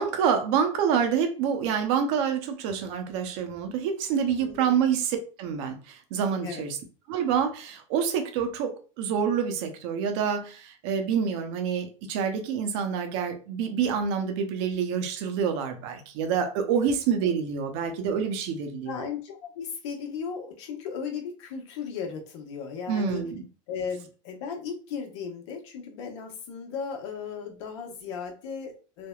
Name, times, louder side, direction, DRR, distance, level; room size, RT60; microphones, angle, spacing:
voice 1, 0.0-6.8 7.1-18.9 22.9-23.5, right 7 dB, 65° right, 0.7 m, -27 dB
voice 2, 4.4-4.8 6.4-6.7 18.9-23.2 23.7-29.1, left 6 dB, 70° left, 0.9 m, -36 dB
3.3 x 2.2 x 2.3 m
hypercardioid pair, 100°, 16 cm